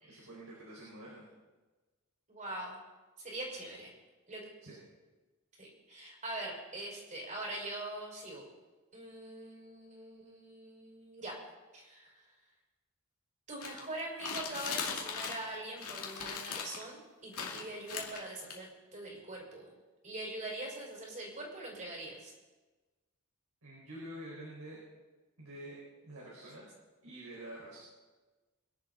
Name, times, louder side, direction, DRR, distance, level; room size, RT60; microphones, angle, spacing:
voice 1, 0.1-1.3 4.6-4.8 23.6-24.8 25.4-26.7 27.0-27.8, right 1 dB, 80° right, -5 dB, 4.9 m, -47 dB
voice 2, 2.3-2.8 3.2-3.9 4.3-4.4 5.6-8.4 8.9-11.3 11.7-12.3 13.5-19.7 20.0-22.3, right 1 dB, 35° right, -2 dB, 5.0 m, -43 dB
sound 1, 13.6-15.5 15.8-16.8 17.3-18.5, left 6 dB, 80° left, 2.5 m, -39 dB
24.5 x 11.0 x 4.0 m, 1.2 s
head